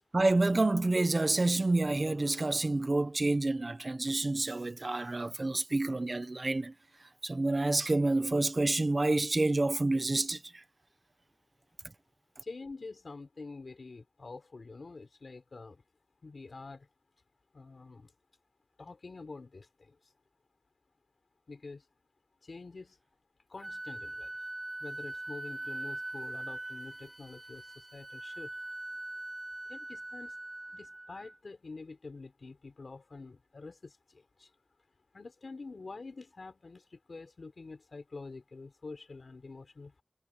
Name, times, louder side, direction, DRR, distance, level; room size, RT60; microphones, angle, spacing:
voice 1, 0.1-6.7 7.2-10.4, right 2 dB, 50° right, 1.2 m, -28 dB
voice 2, 12.4-15.8 16.2-16.9 17.5-18.1 18.8-20.1 21.5-21.9 22.4-23.0 23.5-24.3 24.8-28.5 29.7-30.4 30.7-34.5 35.1-40.0, left 3 dB, 85° left, 4.0 m, -47 dB
Wind instrument woodwind instrument, 23.6-31.4, right 2 dB, 30° right, 0.8 m, -42 dB
wide cardioid pair, 75°, 0 cm